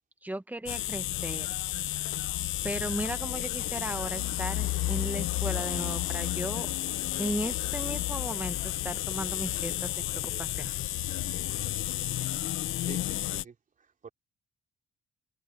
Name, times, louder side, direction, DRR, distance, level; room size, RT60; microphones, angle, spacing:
voice 1, 0.2-1.5 2.6-6.7 7.2-10.7, right 1 dB, 10° right, 1.8 m, -36 dB
sound 1, 0.7-13.4, left 14 dB, 85° left, 1.0 m, -32 dB
voice 2, 11.6-13.0 13.3-14.1, right 6 dB, 40° right, 3.8 m, -50 dB
cardioid pair, 90°, 20 cm